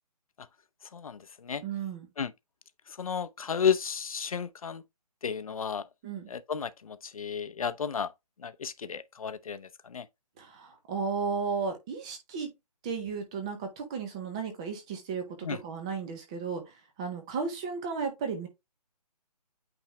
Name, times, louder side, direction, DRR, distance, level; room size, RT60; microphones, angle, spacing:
voice 1, 0.9-1.6 2.2-2.3 2.9-4.8 5.2-5.9 6.3-8.1 8.4-10.1 15.4-15.6, left 7 dB, 55° left, 0.8 m, -32 dB
voice 2, 1.6-2.1 6.0-6.3 10.4-12.5 12.8-16.6 17.0-18.5, right 5 dB, 10° right, 0.6 m, -34 dB
8.8 x 3.5 x 3.1 m
hypercardioid pair, 170°, 21 cm